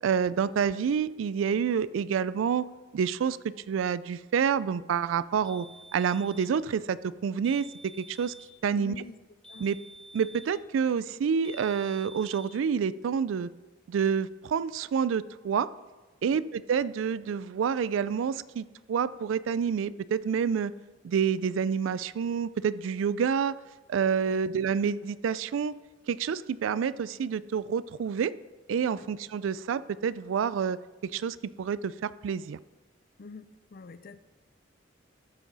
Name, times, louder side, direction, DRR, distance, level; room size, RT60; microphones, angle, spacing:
voice 1, 0.0-2.7 2.9-5.7 5.9-7.7 8.0-8.3 8.6-9.0 9.6-9.8 10.1-13.5 13.9-15.7 16.2-20.7 21.0-23.6 23.9-25.7 26.1-28.3 28.7-32.6, right 7 dB, 85° right, 18 dB, 0.3 m, -28 dB
sound 1, 5.4-6.6 7.4-8.6 9.4-10.6 11.4-12.6, right 1 dB, 5° left, 1.8 m, -49 dB
voice 2, 8.7-9.2 9.5-9.7 16.2-16.4 24.2-24.4 28.9-29.0 33.2-34.2, left 3 dB, 50° left, 12 dB, 0.5 m, -46 dB
13.0 x 6.0 x 4.0 m, 1.2 s
head